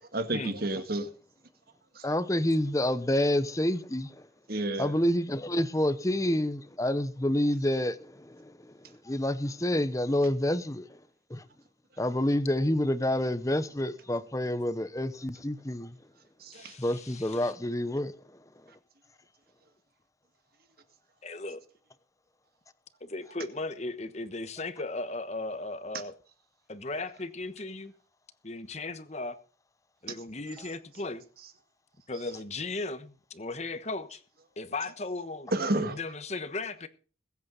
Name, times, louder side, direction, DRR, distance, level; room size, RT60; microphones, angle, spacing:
voice 1, 0.0-1.1 1.9-2.1 4.5-4.9 16.4-16.8 35.5-36.0, right 1 dB, 50° right, 1.9 m, -31 dB
voice 2, 2.0-4.1 4.8-8.5 9.0-10.9 11.3-11.4 12.0-16.0 16.8-18.1, left 1 dB, 15° left, 0.8 m, -28 dB
voice 3, 16.5-17.5 21.2-21.6 23.0-26.1 26.7-27.9 28.4-29.4 30.0-31.2 32.1-34.2 34.6-35.5 35.9-36.9, left 3 dB, 35° left, 1.2 m, -36 dB
21.5 x 8.4 x 4.0 m
head